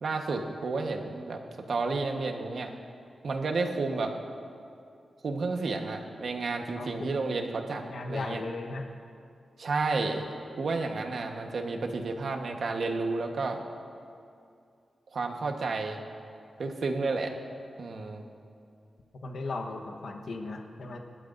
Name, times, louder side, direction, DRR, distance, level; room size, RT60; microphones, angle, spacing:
voice 1, 0.0-1.4 1.7-2.7 3.2-4.1 5.2-7.8 8.1-8.4 9.6-10.2 10.6-13.6 15.1-16.0 16.6-17.3 17.8-18.2, right 3 dB, 55° right, 3 dB, 1.2 m, -31 dB
voice 2, 6.8-7.2 7.7-8.9 19.2-21.0, left 3 dB, 60° left, 3 dB, 1.1 m, -37 dB
27.5 x 12.5 x 2.6 m, 2.4 s
wide cardioid pair, 175°, 0 cm